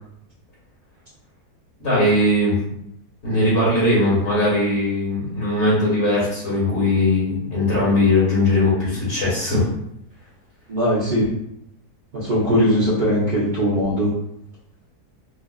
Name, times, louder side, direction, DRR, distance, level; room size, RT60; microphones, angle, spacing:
voice 1, 1.8-2.6 3.2-9.6, left 1 dB, 45° left, -7 dB, 1.8 m, -19 dB
voice 2, 10.7-11.3 12.1-14.1, equal, 40° right, -9 dB, 0.7 m, -20 dB
4.5 x 2.4 x 2.3 m, 0.77 s
omnidirectional pair, 1.7 m